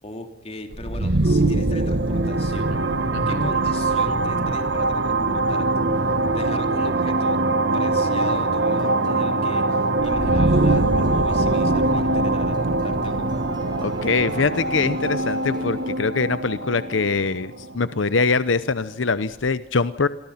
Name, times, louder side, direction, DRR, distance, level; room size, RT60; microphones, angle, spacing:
voice 1, 0.0-2.8 3.3-7.4 7.7-13.3, left 1 dB, 30° left, 5 dB, 3.3 m, -38 dB
sound 1, 0.7-18.4, right 2 dB, 65° right, 1.5 m, -22 dB
voice 2, 3.1-3.5 13.8-20.1, left 4 dB, 80° left, 14 dB, 0.8 m, -23 dB
sound 2, 8.0-16.1, equal, 25° right, 5.6 m, -38 dB
28.5 x 23.0 x 5.8 m, 0.74 s
head